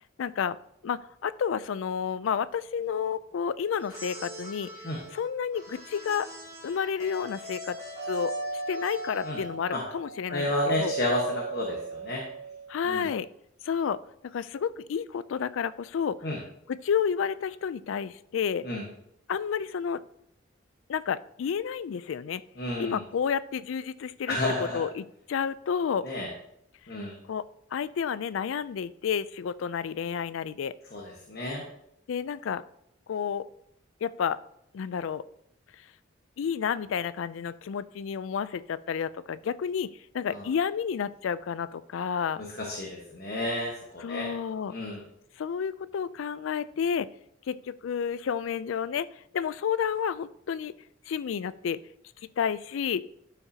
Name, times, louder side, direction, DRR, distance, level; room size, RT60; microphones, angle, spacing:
voice 1, 0.2-0.6 0.8-4.7 5.1-6.3 6.6-7.8 8.1-8.3 8.7-10.9 12.7-13.3 13.6-14.0 14.2-16.2 16.7-18.6 19.3-20.0 20.9-22.4 22.8-24.4 24.7-26.1 27.3-27.4 27.7-30.7 32.1-32.6 33.1-33.4 34.0-34.4 34.7-35.2 36.4-39.9 40.1-42.4 44.0-44.7 45.4-47.1 47.5-49.1 49.3-50.7 51.1-51.8 52.4-53.0, left 7 dB, 85° left, 17 dB, 0.4 m, -30 dB
sound 1, 3.7-9.6, equal, 15° right, 2.1 m, -43 dB
Doorbell, 8.0-12.8, right 4 dB, 80° right, 0.3 m, -36 dB
voice 2, 10.3-12.2 12.9-13.1 16.2-16.4 18.6-18.8 22.6-23.0 24.3-24.8 26.0-26.3 26.9-27.2 30.9-31.6 40.3-40.5 42.6-44.3 44.7-45.0, left 1 dB, 50° left, -1 dB, 1.3 m, -31 dB
12.0 x 5.8 x 2.8 m, 0.74 s
head